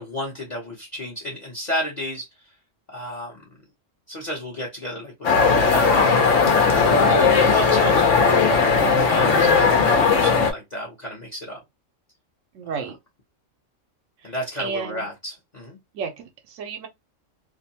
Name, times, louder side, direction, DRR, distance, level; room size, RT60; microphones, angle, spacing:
voice 1, 0.0-2.3 2.9-3.5 4.1-5.3 5.5-8.2 8.9-11.6 12.7-12.9 14.2-15.8, equal, 40° left, 0.8 m, -33 dB
food court, 5.2-10.5, left 5 dB, 75° left, 1.0 m, -17 dB
voice 2, 6.8-7.2 12.5-12.9 14.2-14.3 14.6-15.1 15.9-16.9, right 5 dB, 85° right, 1.0 m, -32 dB
2.6 x 2.1 x 2.7 m
omnidirectional pair, 1.3 m